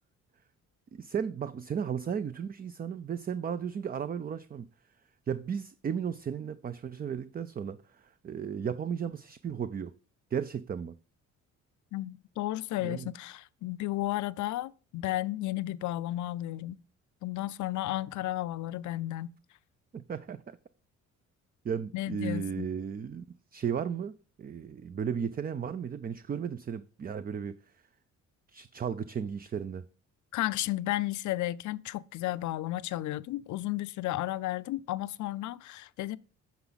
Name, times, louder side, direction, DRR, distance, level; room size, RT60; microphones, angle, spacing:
voice 1, 0.9-4.7 5.3-9.9 10.3-10.9 12.8-13.1 19.9-20.6 21.6-23.2 23.5-27.6 28.5-29.8, right 7 dB, 30° right, 0.5 m, -35 dB
voice 2, 11.9-16.8 17.2-19.3 21.9-22.7 30.3-36.2, left 15 dB, 75° left, 0.5 m, -33 dB
9.4 x 5.8 x 4.0 m
cardioid pair, 90°, 30 cm